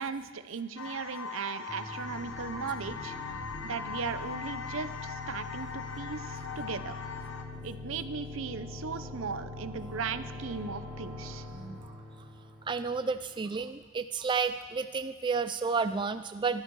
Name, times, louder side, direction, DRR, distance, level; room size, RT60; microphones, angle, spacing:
voice 1, 0.0-3.1 3.6-6.9 7.6-11.4, right 5 dB, 70° right, 12 dB, 0.7 m, -37 dB
sound 1, 0.8-7.4, left 5 dB, 65° left, 1.2 m, -40 dB
sound 2, 1.7-13.2, left 2 dB, 5° right, 2.9 m, -43 dB
voice 2, 11.5-12.0 12.7-16.6, right 5 dB, 25° right, 10 dB, 0.3 m, -31 dB
15.0 x 13.0 x 4.7 m, 1.5 s
head